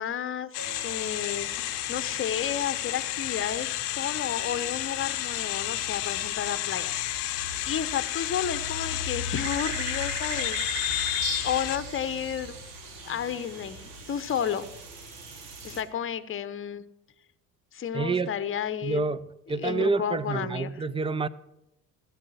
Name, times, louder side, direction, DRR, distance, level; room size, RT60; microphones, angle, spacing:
voice 1, 0.0-1.5 1.9-11.2 11.4-12.6 13.0-14.7 15.6-16.8 17.7-19.0 19.6-20.7, left 9 dB, 25° left, 0.9 m, -32 dB
sound 1, 0.5-11.8, left 17 dB, 75° left, 0.8 m, -31 dB
sound 2, 0.6-15.8, right 2 dB, 75° right, 2.6 m, -39 dB
voice 2, 17.9-18.3 18.8-21.3, right 4 dB, 10° right, 0.5 m, -28 dB
16.0 x 6.9 x 7.7 m
hypercardioid pair, 60°, 48 cm